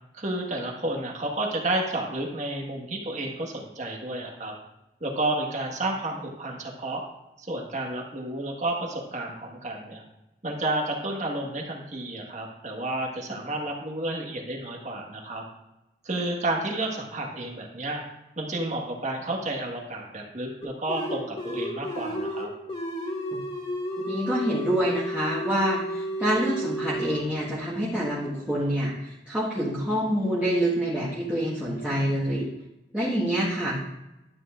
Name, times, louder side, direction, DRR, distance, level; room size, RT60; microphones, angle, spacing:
voice 1, 0.2-4.5 5.0-7.0 7.4-10.0 10.4-15.4 16.0-18.0 18.4-22.5, right 2 dB, 40° right, 0 dB, 1.6 m, -31 dB
sound 1, 20.6-27.2, equal, 30° left, 2.2 m, -32 dB
voice 2, 24.0-32.5 32.9-33.8, equal, 10° right, -10 dB, 1.5 m, -26 dB
12.5 x 9.3 x 2.5 m, 0.93 s
head